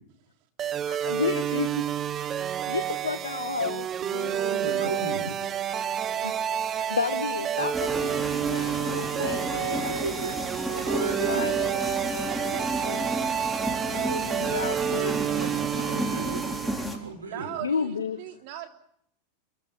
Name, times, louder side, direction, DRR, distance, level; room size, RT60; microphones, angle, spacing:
sound 1, 0.6-17.0, right 10 dB, 30° right, 0.9 m, -29 dB
voice 1, 0.9-1.8 2.3-4.3 5.3-5.4 5.6-10.0 11.3-13.1 13.9-14.1 14.4-15.1 17.6-18.2, left 5 dB, 80° left, 1.2 m, -33 dB
voice 2, 4.2-5.3 8.6-11.5 13.8-14.7 15.0-17.5, right 3 dB, 80° right, 5.3 m, -35 dB
sound 2, 7.7-17.0, equal, ahead, 3.6 m, -33 dB
voice 3, 12.3-13.3 17.2-18.7, right 12 dB, 55° right, 3.3 m, -40 dB
29.0 x 15.5 x 9.0 m
figure-of-eight pair, 90°, 0 cm